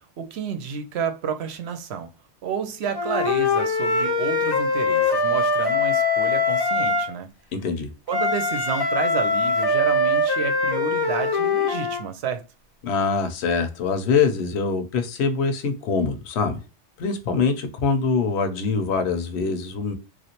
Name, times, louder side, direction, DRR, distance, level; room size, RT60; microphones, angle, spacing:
voice 1, 0.2-2.1 2.4-7.3 8.1-12.4, right 7 dB, 70° right, 0.8 m, -30 dB
Wind instrument woodwind instrument, 2.9-7.1 8.1-12.0, left 3 dB, 35° left, 0.4 m, -22 dB
voice 2, 7.5-7.9 12.8-16.6 17.0-19.9, left 5 dB, 75° left, 0.9 m, -24 dB
3.2 x 2.5 x 2.8 m
omnidirectional pair, 1.2 m